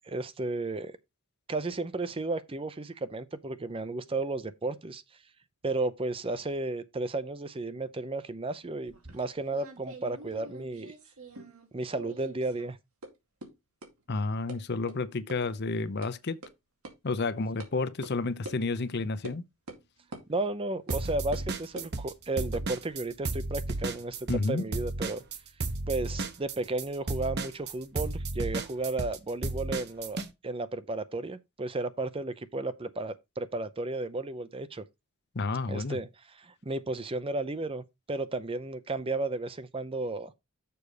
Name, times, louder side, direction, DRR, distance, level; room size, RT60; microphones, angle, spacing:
voice 1, 0.0-1.0 1.5-5.0 5.6-10.9 11.7-12.8 20.3-25.2 25.9-34.8 35.7-40.3, right 2 dB, 25° right, 0.5 m, -33 dB
sound 1, 8.8-11.7 11.9-12.7 13.0-13.1 13.4-13.5 13.8-13.9 14.5-14.6 14.9-15.0 15.3-15.4 15.7-16.1 16.4-16.5 16.8-16.9 17.6-17.7 18.0-18.1 18.4-18.6 19.2-19.4 19.7-19.8 20.1-20.2 20.9-21.0 21.3-21.9 22.4-24.0, right 1 dB, 80° right, 2.2 m, -45 dB
voice 2, 14.1-16.4 17.0-19.4 24.3-24.7 35.3-36.0, left 3 dB, 50° left, 0.6 m, -30 dB
sound 2, 20.9-22.1 22.4-30.3, right 2 dB, 50° right, 1.0 m, -33 dB
6.9 x 5.3 x 4.9 m
head